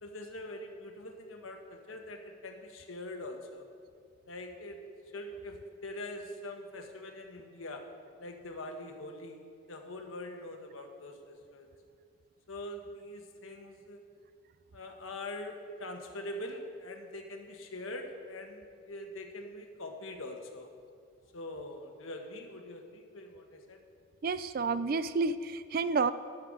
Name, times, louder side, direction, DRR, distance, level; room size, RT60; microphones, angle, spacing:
voice 1, 0.0-3.6 4.3-4.8 5.1-5.6 5.8-7.8 8.2-11.7 12.5-14.0 14.7-20.7 21.3-23.8, left 1 dB, 85° left, 3 dB, 1.3 m, -43 dB
voice 2, 24.2-26.1, right 4 dB, 45° right, 14 dB, 0.4 m, -30 dB
12.5 x 8.2 x 5.0 m, 2.2 s
head